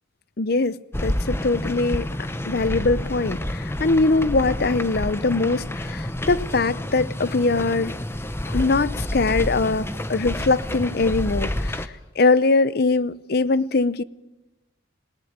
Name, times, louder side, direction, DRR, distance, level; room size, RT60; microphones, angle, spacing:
voice 1, 0.4-2.1 2.4-7.9 8.5-11.9 12.2-14.0, left 3 dB, 50° left, 0.7 m, -22 dB
sound 1, 0.9-11.9, left 1 dB, 10° left, 0.9 m, -29 dB
20.0 x 19.0 x 7.4 m
head